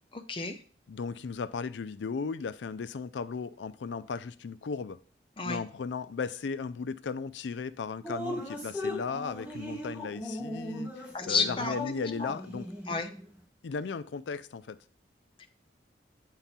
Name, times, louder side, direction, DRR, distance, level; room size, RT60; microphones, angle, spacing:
voice 1, 0.1-0.6 5.4-5.6 11.1-11.8 12.2-12.4 12.9-13.1 15.4-15.5, left 4 dB, 30° left, 0.7 m, -31 dB
voice 2, 0.9-5.0 5.4-12.7 13.6-14.8, left 5 dB, 85° left, 0.4 m, -36 dB
Drip, 8.0-13.3, left 1 dB, 10° right, 1.6 m, -38 dB
8.1 x 3.8 x 4.2 m
head